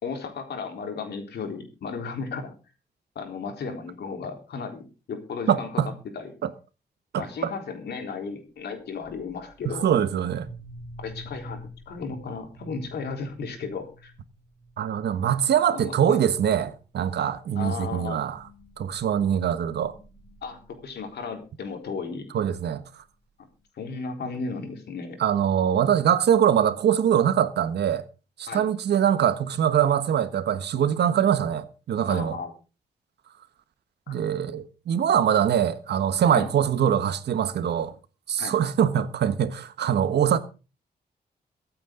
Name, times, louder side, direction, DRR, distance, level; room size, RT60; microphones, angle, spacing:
voice 1, 0.0-2.6 3.2-5.7 6.1-6.3 7.2-9.9 11.0-14.1 15.7-16.2 17.5-18.2 20.4-22.3 23.8-25.2 28.5-28.7 32.0-32.5 34.1-34.2 36.3-36.5 38.4-38.6, left 5 dB, 80° left, 3.8 m, -35 dB
voice 2, 5.5-5.9 6.4-6.5 7.1-7.2 9.6-10.5 14.8-18.4 18.8-19.9 22.3-22.8 25.2-28.0 28.4-32.4 34.1-37.9 38.3-40.4, right 9 dB, 85° right, 1.3 m, -23 dB
sound 1, 9.0-9.4 10.3-14.8 15.1-15.3 15.6-15.9 16.1-16.4 17.1-17.2 18.2-21.4, equal, 15° left, 5.3 m, -46 dB
23.5 x 8.7 x 3.8 m
wide cardioid pair, 155°, 17 cm